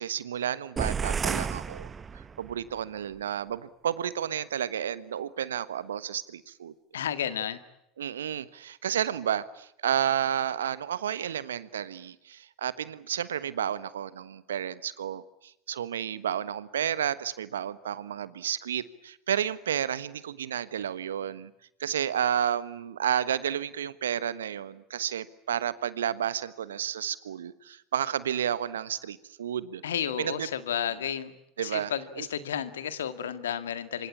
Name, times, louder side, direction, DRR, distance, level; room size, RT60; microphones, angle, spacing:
voice 1, 0.0-6.7 8.0-21.5 21.8-29.8 30.2-30.5 31.6-32.3, right 9 dB, 80° right, 16 dB, 1.2 m, -31 dB
sound 1, 0.8-2.6, right 6 dB, 25° right, 1.1 m, -31 dB
voice 2, 6.9-7.6 29.8-31.3 31.6-34.1, left 9 dB, 75° left, 12 dB, 1.9 m, -32 dB
26.5 x 25.5 x 8.5 m, 0.79 s
hypercardioid pair, 75°, 0 cm